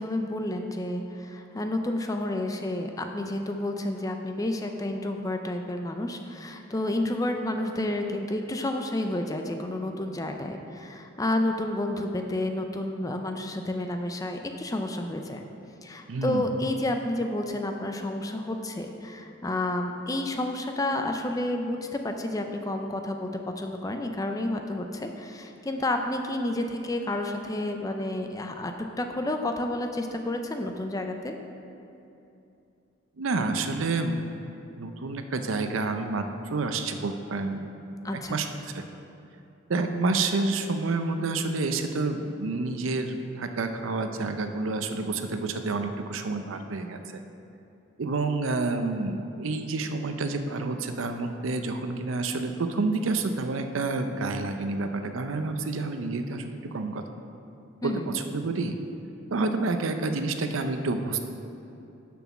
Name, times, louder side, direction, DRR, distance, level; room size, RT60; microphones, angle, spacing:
voice 1, 0.0-15.4 15.8-23.3 23.6-31.3 38.0-38.4 57.8-58.1, left 1 dB, 15° left, 5 dB, 0.4 m, -30 dB
voice 2, 16.1-16.5 33.2-34.2 34.8-36.3 36.5-38.8 39.7-47.2 48.0-57.0 57.8-58.8 59.3-61.2, right 3 dB, 85° right, 7 dB, 0.6 m, -29 dB
6.9 x 6.2 x 5.9 m, 2.8 s
head